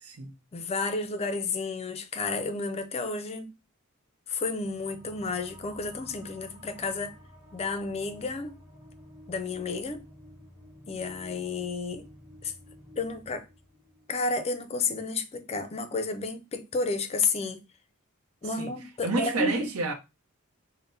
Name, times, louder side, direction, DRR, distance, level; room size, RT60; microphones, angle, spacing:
voice 1, 0.5-3.5 4.3-7.2 7.5-8.6 9.3-10.0 10.9-12.1 12.4-12.5 13.0-13.5 14.1-17.6 18.4-19.7, left 3 dB, 30° left, 0.4 m, -31 dB
sound 1, 4.4-15.3, equal, 10° right, 2.3 m, -52 dB
voice 2, 19.0-19.9, right 2 dB, 85° right, 0.7 m, -29 dB
5.4 x 2.1 x 2.6 m
head